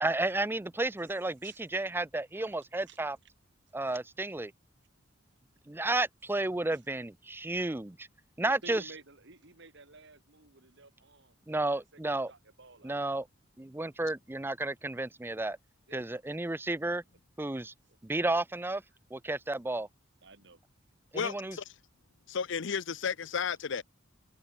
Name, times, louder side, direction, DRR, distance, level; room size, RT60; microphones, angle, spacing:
voice 1, 0.0-3.2 3.7-4.5 5.7-8.1 8.4-8.8 11.5-12.3 12.8-13.3 13.6-15.6 15.9-17.0 17.4-17.7 18.0-18.8 19.1-19.9 21.1-21.6, right 2 dB, 10° right, 0.5 m, -32 dB
voice 2, 8.4-12.9 15.9-16.0 20.2-20.6 21.3-21.6, right 3 dB, 65° right, 4.4 m, -53 dB
voice 3, 21.1-21.6 22.3-23.8, left 6 dB, 65° left, 0.7 m, -33 dB
open air
head